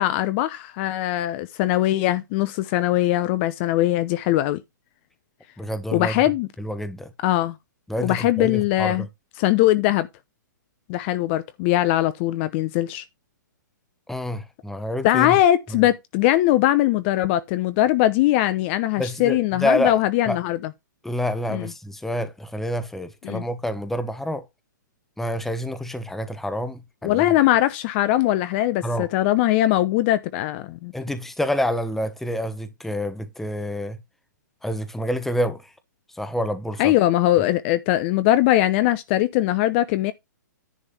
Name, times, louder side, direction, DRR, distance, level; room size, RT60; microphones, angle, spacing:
voice 1, 0.0-4.6 5.9-6.5 7.2-7.6 8.0-9.1 9.4-10.1 10.9-13.0 15.0-20.6 21.5-21.7 23.2-23.4 27.0-30.9 36.8-40.1, left 14 dB, 35° left, 0.7 m, -21 dB
voice 2, 5.6-6.2 6.6-7.1 7.9-9.1 14.1-15.4 15.7-15.8 19.0-20.0 20.3-20.4 21.0-24.4 25.2-27.3 28.8-29.1 30.9-34.0 34.6-35.7 36.1-36.9, equal, 5° left, 1.0 m, -28 dB
10.0 x 3.5 x 5.8 m
hypercardioid pair, 125°, 10 cm